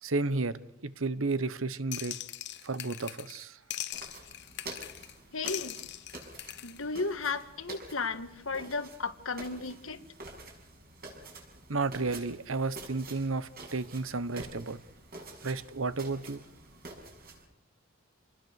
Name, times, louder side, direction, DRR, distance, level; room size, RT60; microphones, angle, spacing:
voice 1, 0.0-2.2 2.6-3.6 11.7-14.8 15.4-16.4, right 3 dB, 85° right, 15 dB, 1.1 m, -32 dB
sound 1, 1.9-3.4 3.7-5.1 5.5-6.8, left 13 dB, 60° left, 1.0 m, -41 dB
sound 2, 3.9-17.4, right 2 dB, 50° right, 6.5 m, -48 dB
voice 2, 5.3-5.8 6.6-10.1, left 4 dB, 85° left, 10 dB, 1.6 m, -34 dB
28.0 x 20.5 x 6.6 m, 0.75 s
head